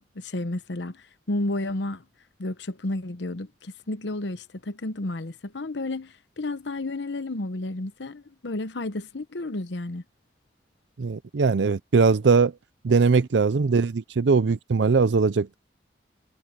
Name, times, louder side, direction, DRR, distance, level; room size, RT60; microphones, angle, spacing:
voice 1, 0.0-2.0 2.4-10.0, left 2 dB, 80° left, 0.9 m, -32 dB
voice 2, 11.0-12.5 12.8-15.5, right 4 dB, 80° right, 0.5 m, -21 dB
head